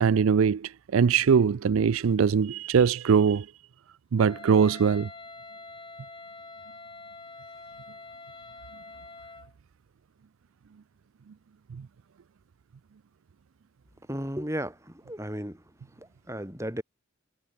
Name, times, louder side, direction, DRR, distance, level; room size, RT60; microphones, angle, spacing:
voice 1, 0.0-3.5 4.1-5.1, right 6 dB, 85° right, 0.4 m, -22 dB
Wind instrument woodwind instrument, 4.2-9.5, left 3 dB, 25° left, 3.0 m, -46 dB
voice 2, 14.1-15.6 16.0-16.8, equal, 15° right, 5.0 m, -34 dB
head